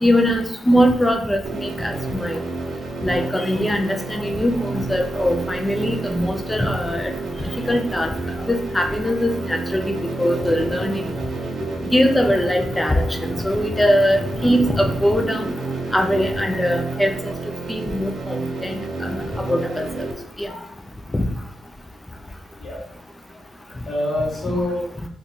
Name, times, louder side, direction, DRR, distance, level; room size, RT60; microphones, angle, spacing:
voice 1, 0.0-2.4 3.0-7.1 7.7-8.1 8.5-10.9 11.9-15.5 15.9-17.1 17.7-20.1 20.4-20.6 21.1-21.2, equal, 10° left, 3 dB, 0.3 m, -21 dB
sound 1, 1.4-20.1, right 3 dB, 60° right, 0.5 m, -30 dB
voice 2, 11.1-11.8 22.6-22.8 23.9-24.8, left 1 dB, 35° left, -5 dB, 1.0 m, -27 dB
2.7 x 2.3 x 4.0 m, 0.68 s
wide cardioid pair, 145°, 0 cm